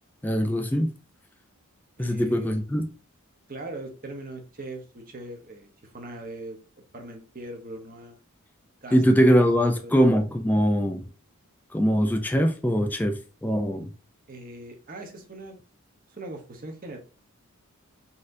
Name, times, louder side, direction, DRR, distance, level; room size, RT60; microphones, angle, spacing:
voice 1, 0.2-0.9 2.0-2.9 8.9-11.0 11.7-13.9, equal, 10° left, 0.3 m, -22 dB
voice 2, 2.0-2.6 3.5-6.6 6.9-8.2 8.8-9.3 9.5-9.9 14.3-15.6 16.1-17.0, right 1 dB, 40° right, 0.9 m, -40 dB
4.1 x 3.8 x 2.6 m
head